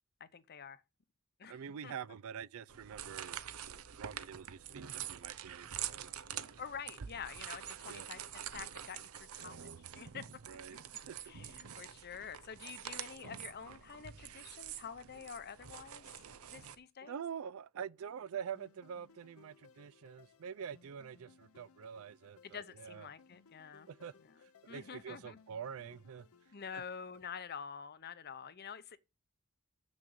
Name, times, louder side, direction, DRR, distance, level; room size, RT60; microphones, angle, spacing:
voice 1, 0.2-0.8 1.4-1.9 6.6-9.7 9.9-10.3 11.2-16.0 16.5-17.2 22.4-23.9 24.2-24.3 24.7-25.4 26.5-29.0, left 7 dB, 50° left, 0.7 m, -47 dB
voice 2, 1.5-3.4 4.0-6.1 7.9-8.1 10.5-10.8 11.1-11.3 17.0-23.1 23.9-24.2 24.6-26.3 26.7-26.8, right 7 dB, 70° right, 0.4 m, -46 dB
sound 1, 2.7-16.7, right 10 dB, 85° right, 0.8 m, -46 dB
sound 2, 18.5-27.3, left 5 dB, 80° left, 0.8 m, -64 dB
7.3 x 6.3 x 6.4 m
head